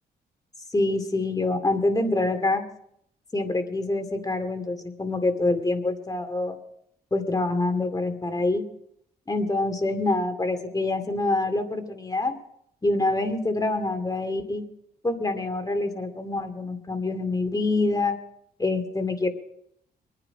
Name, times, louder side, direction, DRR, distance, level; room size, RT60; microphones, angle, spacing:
voice 1, 0.7-2.6 3.3-6.6 7.1-8.6 9.3-12.3 12.8-14.6 15.0-18.2 18.6-19.3, left 2 dB, 20° left, 7 dB, 2.3 m, -26 dB
25.0 x 9.9 x 4.9 m, 0.73 s
cardioid pair, 90°, 17 cm